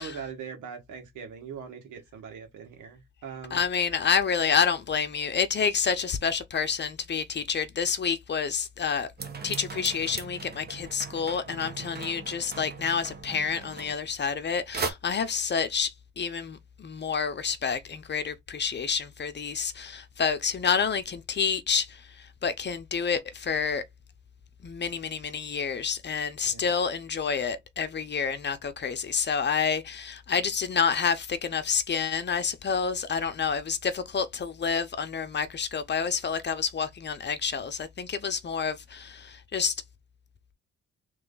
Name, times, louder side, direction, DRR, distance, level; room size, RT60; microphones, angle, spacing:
voice 1, 0.0-3.7 11.5-12.0 26.4-26.7, right 6 dB, 85° right, 1.7 m, -42 dB
voice 2, 3.5-9.1 9.4-22.0 22.4-23.8 24.6-39.7, left 6 dB, 35° left, 0.8 m, -28 dB
sound 1, 9.2-14.5 14.7-14.9, right 4 dB, 35° right, 1.1 m, -38 dB
3.4 x 3.2 x 3.9 m
cardioid pair, 90°, 30 cm